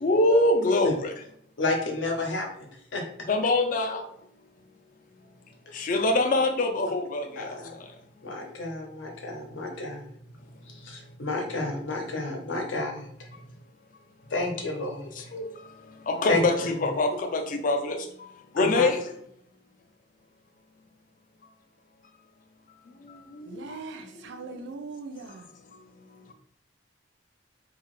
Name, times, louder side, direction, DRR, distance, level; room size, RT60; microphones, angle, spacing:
voice 1, 0.0-1.1 3.3-4.0 5.7-7.5 15.3-15.4 16.1-18.0 18.6-19.0 23.3-23.8, left 2 dB, 40° left, 0.4 m, -24 dB
voice 2, 1.6-3.0 5.7-5.8 7.4-7.8 8.2-10.0 10.8-13.3 14.3-15.3 16.3-16.4 18.6-18.9, left 2 dB, 70° left, 0.7 m, -31 dB
voice 3, 23.5-25.4, right 4 dB, 65° right, 0.4 m, -40 dB
2.8 x 2.3 x 3.0 m
head